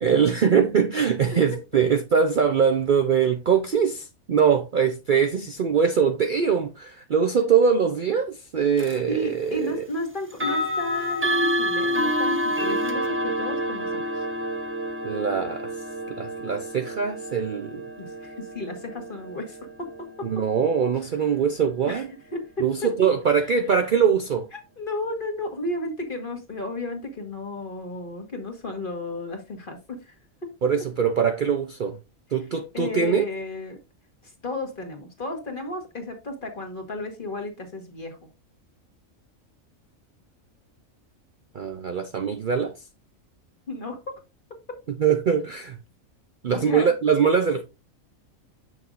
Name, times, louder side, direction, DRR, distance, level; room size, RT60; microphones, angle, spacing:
voice 1, 0.0-9.8 15.0-15.7 16.1-17.8 20.2-22.1 22.6-24.5 30.6-32.0 32.3-33.2 41.5-42.7 45.0-45.8 46.4-47.6, right 7 dB, 50° right, 0.6 m, -22 dB
sound 1, 8.8-9.0 10.3-21.2, equal, 10° right, 0.7 m, -28 dB
voice 2, 9.1-14.2 18.0-20.3 21.9-22.0 22.3-23.4 24.5-30.2 30.4-30.5 32.7-33.8 34.2-38.2 43.7-44.2 46.5-46.9, left 1 dB, 40° left, 1.7 m, -33 dB
7.6 x 6.2 x 2.5 m
omnidirectional pair, 1.4 m